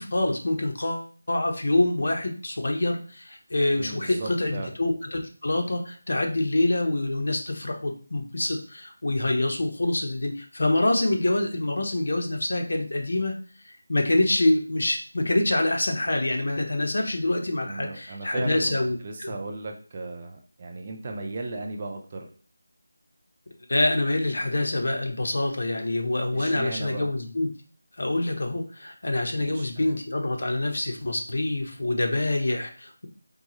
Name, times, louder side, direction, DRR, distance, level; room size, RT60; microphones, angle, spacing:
voice 1, 0.0-13.3 13.9-19.3 23.7-27.5 28.0-33.1, left 2 dB, 60° left, 2 dB, 1.0 m, -26 dB
voice 2, 3.7-4.7 17.6-18.8 19.0-22.3 26.3-27.1 29.4-30.0, right 2 dB, 25° right, 2 dB, 0.5 m, -36 dB
4.4 x 3.3 x 3.1 m, 0.40 s
figure-of-eight pair, 175°, 0 cm